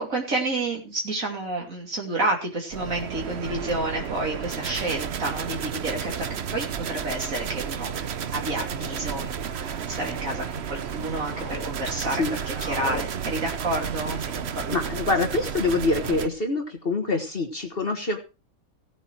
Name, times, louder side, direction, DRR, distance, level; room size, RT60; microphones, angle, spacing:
voice 1, 0.0-14.8, right 2 dB, 70° right, 0 dB, 3.3 m, -30 dB
sound 1, 2.7-16.3, right 8 dB, 55° right, 1.0 m, -32 dB
sound 2, 6.3-6.4 7.3-7.7 8.6-9.1 9.7-10.4 10.8-11.7 12.0-13.1, left 4 dB, 80° left, 2.3 m, -41 dB
voice 2, 14.7-18.2, left 3 dB, 45° left, 5 dB, 1.8 m, -25 dB
17.0 x 8.3 x 4.5 m, 0.30 s
omnidirectional pair, 1.4 m